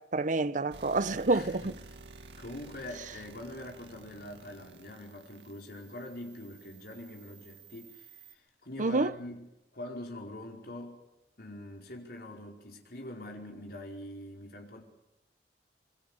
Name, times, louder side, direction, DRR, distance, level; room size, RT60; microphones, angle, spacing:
voice 1, 0.0-1.7 8.8-9.1, right 3 dB, 45° right, 0.7 m, -28 dB
sound 1, 0.7-8.3, right 3 dB, 80° right, 2.2 m, -53 dB
voice 2, 1.3-1.8 2.4-11.1 11.4-14.8, left 1 dB, 60° left, 4.9 m, -44 dB
26.0 x 23.0 x 5.2 m
head